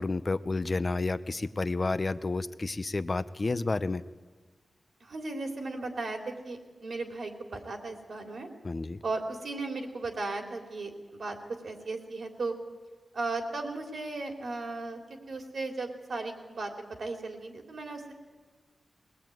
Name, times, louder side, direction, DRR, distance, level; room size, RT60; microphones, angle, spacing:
voice 1, 0.0-4.0 8.6-9.0, left 3 dB, 35° left, 12 dB, 0.8 m, -30 dB
voice 2, 5.0-8.5 9.0-11.4 11.6-12.5 13.1-16.7 17.0-18.1, right 3 dB, 70° right, 3 dB, 3.3 m, -36 dB
21.5 x 19.5 x 9.2 m, 1.3 s
wide cardioid pair, 100°, 0 cm